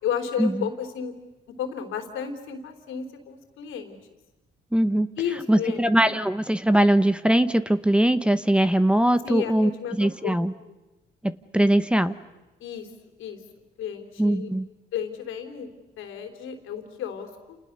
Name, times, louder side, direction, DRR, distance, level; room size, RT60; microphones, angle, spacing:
voice 1, 0.0-1.1 1.6-3.9 5.2-5.8 9.2-10.3 12.6-12.9 13.2-13.4 13.8-14.5 14.9-15.7 16.0-17.6, left 8 dB, 85° left, 6 dB, 3.8 m, -32 dB
voice 2, 4.7-5.1 5.5-9.7 10.0-10.5 11.5-12.1 14.2-14.7, right 1 dB, 5° right, 12 dB, 1.0 m, -21 dB
30.0 x 29.0 x 6.8 m, 1.1 s
cardioid pair, 90°, 20 cm